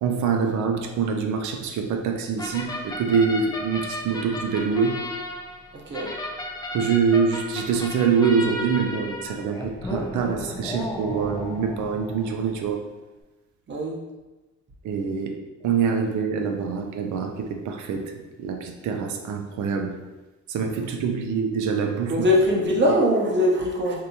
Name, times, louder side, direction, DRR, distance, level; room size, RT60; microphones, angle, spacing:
voice 1, 0.0-5.0 6.7-12.9 14.8-15.4 15.6-18.1 18.4-20.0 20.5-22.2 22.9-23.0, right 6 dB, 75° right, 4 dB, 0.5 m, -25 dB
sound 1, 2.4-12.7, left 1 dB, 15° left, 0.5 m, -34 dB
voice 2, 22.1-24.1, left 1 dB, 35° right, -2 dB, 0.8 m, -21 dB
3.4 x 2.7 x 2.8 m, 1.1 s
cardioid pair, 90°, 30 cm